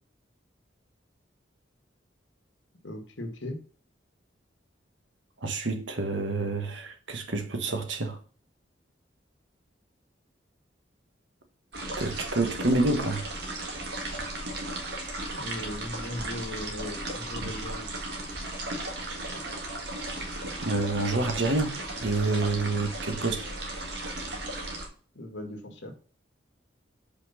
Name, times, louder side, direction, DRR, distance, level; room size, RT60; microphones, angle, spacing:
voice 1, 2.8-3.6 15.3-17.9 25.2-25.9, left 1 dB, 80° left, 1.8 m, -38 dB
voice 2, 5.4-8.2 12.0-13.2 17.4-17.5 20.6-23.4, right 2 dB, 85° right, 1.3 m, -28 dB
sound 1, 11.7-24.9, right 1 dB, 60° right, 1.8 m, -36 dB
5.3 x 4.5 x 5.7 m
head